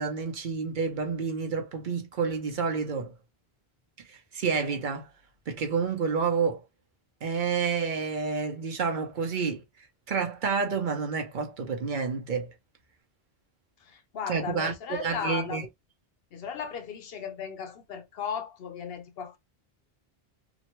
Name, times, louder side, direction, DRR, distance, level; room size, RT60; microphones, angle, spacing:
voice 1, 0.0-3.1 4.1-5.1 5.5-6.6 7.2-9.6 10.1-12.5 14.3-15.6, right 5 dB, 55° right, 0.7 m, -29 dB
voice 2, 13.8-15.7 16.3-19.4, left 7 dB, 70° left, 0.9 m, -36 dB
2.9 x 2.2 x 2.9 m
omnidirectional pair, 1.0 m